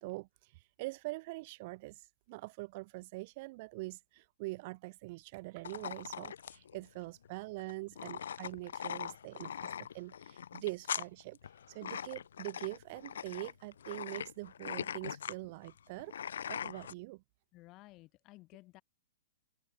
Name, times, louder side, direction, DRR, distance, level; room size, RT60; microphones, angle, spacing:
voice 1, 0.0-17.2, right 23 dB, 45° right, 7.9 m, -44 dB
sound 1, 5.6-16.9, left 8 dB, 75° left, 1.4 m, -42 dB
voice 2, 17.5-18.8, left 20 dB, 30° left, 5.9 m, -56 dB
hypercardioid pair, 130°, 0 cm